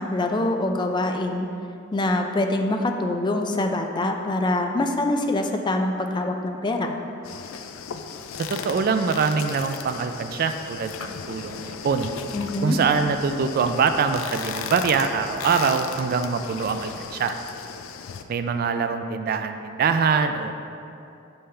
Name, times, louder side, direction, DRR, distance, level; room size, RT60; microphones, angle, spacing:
voice 1, 0.0-1.5 1.9-6.9 12.3-12.8, left 2 dB, 25° left, 4 dB, 0.4 m, -24 dB
sound 1, 7.2-18.2, left 6 dB, 90° left, 0.4 m, -36 dB
voice 2, 8.4-12.1 12.6-17.4 18.3-20.5, right 5 dB, 50° right, 8 dB, 0.3 m, -24 dB
6.8 x 5.5 x 3.3 m, 2.6 s
head